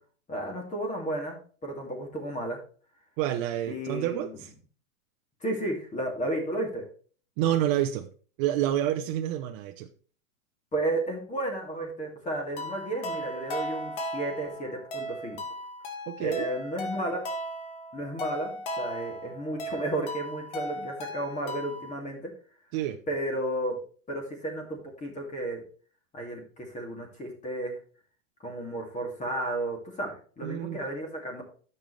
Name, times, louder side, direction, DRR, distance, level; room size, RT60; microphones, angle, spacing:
voice 1, 0.3-2.6 3.7-4.3 5.4-6.8 10.7-15.4 16.2-17.2 17.9-22.3 23.1-23.8 24.1-25.6 26.1-27.8 28.4-31.4, right 1 dB, 20° left, 2.5 m, -33 dB
voice 2, 3.2-4.5 7.4-8.1 8.4-9.9 16.1-16.5 22.7-23.0 30.4-30.8, right 12 dB, 40° right, 0.8 m, -28 dB
sound 1, 12.6-21.9, equal, 60° left, 2.4 m, -37 dB
10.5 x 6.9 x 3.3 m
hypercardioid pair, 115°, 40 cm